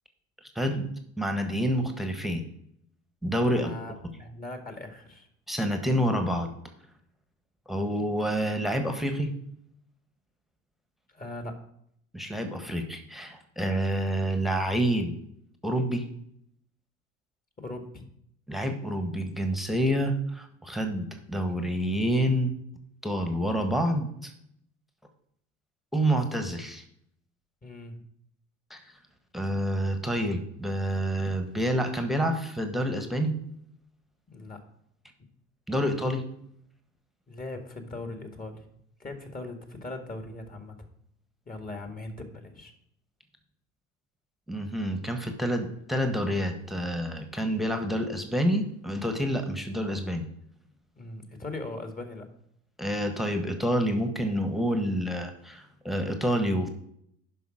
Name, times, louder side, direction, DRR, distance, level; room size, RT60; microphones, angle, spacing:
voice 1, 0.5-0.9 1.2-2.4 3.2-3.7 5.5-6.5 7.7-9.3 12.1-15.2 15.6-16.0 18.5-22.6 23.0-24.3 25.9-26.8 28.7-28.8 29.3-33.4 35.7-36.2 44.5-50.2 52.8-56.7, equal, ahead, 6 dB, 1.4 m, -28 dB
voice 2, 3.5-5.3 11.1-11.6 17.6-17.9 27.6-28.0 34.3-34.6 37.3-38.7 39.0-40.8 41.5-42.7 51.0-52.3, left 2 dB, 20° left, 5 dB, 1.8 m, -39 dB
11.0 x 5.6 x 5.0 m, 0.71 s
hypercardioid pair, 70°, 40 cm